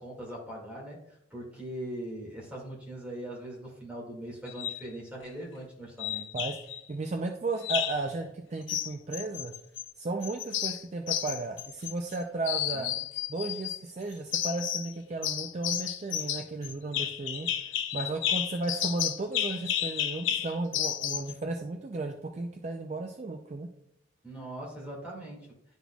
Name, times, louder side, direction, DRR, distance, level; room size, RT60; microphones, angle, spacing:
voice 1, 0.0-6.2 12.7-13.0 24.2-25.5, right 1 dB, 5° right, -5 dB, 1.9 m, -41 dB
sound 1, 4.5-4.8 6.0-6.8 7.6-8.1 8.7-9.9 10.2-12.2 12.4-13.8 14.3-14.9 15.2-21.3, left 11 dB, 75° left, 0.5 m, -32 dB
voice 2, 6.9-9.5 10.0-12.9 13.3-23.7, right 3 dB, 35° right, 4 dB, 0.4 m, -34 dB
11.0 x 4.0 x 2.3 m, 0.79 s
head